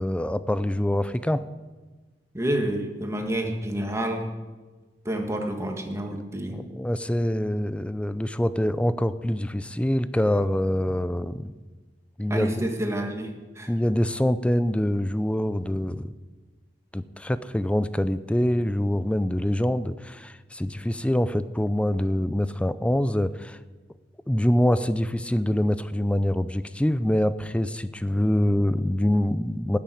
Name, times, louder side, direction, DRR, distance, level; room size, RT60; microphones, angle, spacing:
voice 1, 0.0-1.4 6.5-11.5 12.2-12.5 13.7-16.1 16.9-23.6 24.3-29.8, left 1 dB, 5° left, 14 dB, 0.4 m, -25 dB
voice 2, 2.3-4.3 5.1-6.6 12.3-13.7, right 1 dB, 15° right, 3 dB, 1.7 m, -29 dB
13.5 x 7.2 x 9.3 m, 1.3 s
head